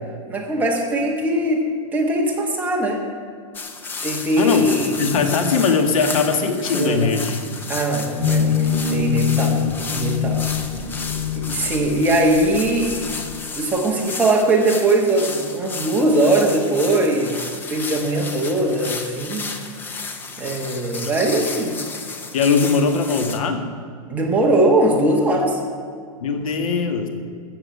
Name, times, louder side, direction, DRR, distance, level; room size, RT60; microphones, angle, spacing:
voice 1, 0.3-1.6 1.9-3.0 4.0-5.2 6.7-7.1 7.7-9.6 9.9-10.4 11.1-12.9 13.6-17.4 17.7-19.5 20.4-21.8 24.1-25.6, right 1 dB, 10° right, -1 dB, 1.6 m, -20 dB
sound 1, 3.5-23.4, left 4 dB, 10° left, 0.7 m, -33 dB
voice 2, 5.0-7.7 10.8-10.9 20.9-21.1 22.3-23.7 26.2-27.1, left 5 dB, 75° left, 6 dB, 1.9 m, -20 dB
sound 2, 8.2-13.4, left 7 dB, 35° left, 2.4 m, -24 dB
14.0 x 7.4 x 8.3 m, 2.2 s
supercardioid pair, 165°, 18 cm